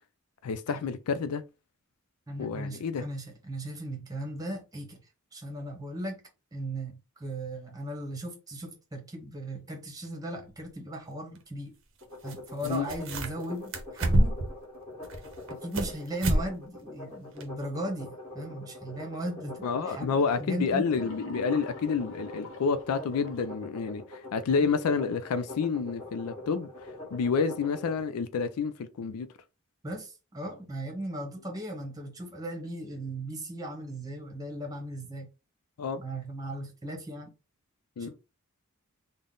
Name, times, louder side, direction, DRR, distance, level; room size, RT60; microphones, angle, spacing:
voice 1, 0.4-1.4 2.4-3.0 12.6-12.9 19.6-29.3 35.8-36.0 38.0-38.1, left 5 dB, 85° left, 0.4 m, -29 dB
voice 2, 2.3-5.0 5.3-6.2 6.5-11.7 12.2-14.3 15.6-20.9 24.6-24.7 29.8-35.3 36.0-37.3 38.0-38.1, right 1 dB, 15° right, 1.0 m, -37 dB
sound 1, 10.6-10.7 12.3-12.4 12.6-13.4 13.7-14.5 15.0-15.9 16.2-16.5 16.8-16.9 17.4-17.5, right 1 dB, 60° right, 0.7 m, -27 dB
sound 2, 12.0-28.0, left 2 dB, 20° left, 1.5 m, -44 dB
sound 3, 20.7-23.5, left 1 dB, 60° left, 0.8 m, -44 dB
3.7 x 2.1 x 3.7 m
head